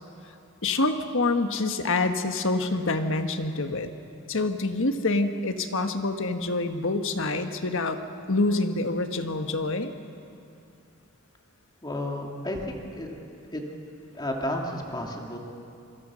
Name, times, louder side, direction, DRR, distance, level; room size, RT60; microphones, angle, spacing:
voice 1, 0.6-3.9 4.3-8.0 8.3-9.9, left 2 dB, 65° left, 7 dB, 1.5 m, -26 dB
voice 2, 11.8-13.1 13.5-13.6 14.1-15.4, left 1 dB, 20° left, 0 dB, 2.8 m, -32 dB
25.5 x 24.5 x 6.4 m, 2.6 s
head